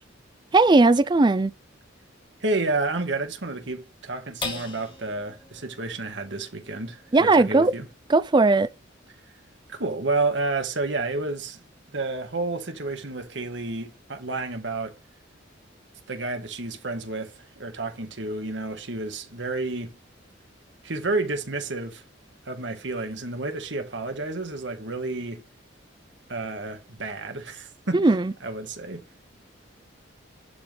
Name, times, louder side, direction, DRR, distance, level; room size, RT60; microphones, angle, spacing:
voice 1, 0.5-1.5 7.1-7.7 8.1-8.7 27.9-28.3, right 3 dB, 25° right, 0.4 m, -18 dB
voice 2, 2.4-7.9 9.7-11.6 11.9-14.9 16.1-19.9 20.8-22.0 22.4-25.5 26.3-29.0, right 3 dB, 65° right, 1.6 m, -30 dB
sound 1, 4.4-11.1 11.6-11.7 12.1-12.6, left 3 dB, 25° left, 1.9 m, -43 dB
11.5 x 3.8 x 3.3 m
head